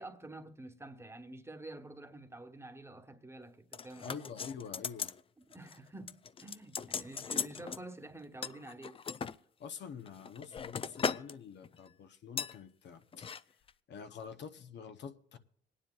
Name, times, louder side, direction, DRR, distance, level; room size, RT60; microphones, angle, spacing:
voice 1, 0.0-4.3 5.5-9.0, right 2 dB, 15° right, 1.2 m, -48 dB
sound 1, 3.7-5.2 5.5-5.8 6.1-7.8 8.4-9.4 10.0-11.3 11.6-11.9 12.4-12.6 13.1-13.4 13.7-13.8, left 6 dB, 30° left, 0.4 m, -38 dB
voice 2, 4.0-5.1 9.6-13.3 13.9-15.4, left 6 dB, 60° left, 0.8 m, -47 dB
26.0 x 9.8 x 2.4 m
cardioid pair, 90°, 20 cm